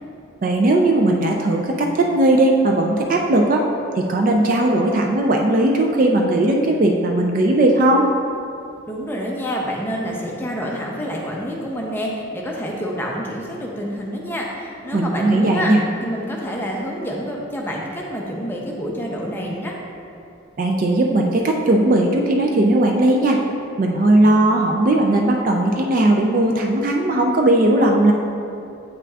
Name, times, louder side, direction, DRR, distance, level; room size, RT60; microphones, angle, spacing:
voice 1, 0.4-3.6 4.0-8.1 14.9-15.8 20.6-23.4 23.8-28.1, right 1 dB, 40° right, 1 dB, 0.4 m, -17 dB
voice 2, 8.9-15.7 16.0-19.7, equal, 10° left, -2 dB, 0.6 m, -27 dB
8.1 x 5.7 x 2.4 m, 2.6 s
head